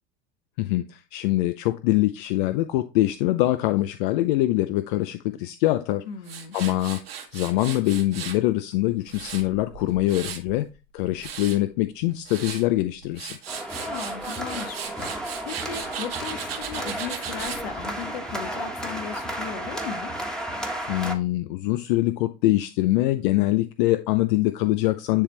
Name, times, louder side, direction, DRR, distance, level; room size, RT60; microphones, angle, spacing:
voice 1, 0.6-6.0 6.5-7.0 7.3-10.7 10.9-13.4 20.9-25.2, left 16 dB, 60° left, 0.6 m, -24 dB
voice 2, 6.0-6.6 13.7-20.1, left 7 dB, 75° left, 1.3 m, -37 dB
Tools, 6.2-8.4 8.9-10.5 11.0-11.6 12.1-12.6 13.0-17.6, right 8 dB, 85° right, 1.6 m, -37 dB
sound 1, 13.5-21.1, right 1 dB, ahead, 1.4 m, -33 dB
10.0 x 3.4 x 3.3 m
hypercardioid pair, 95°, 29 cm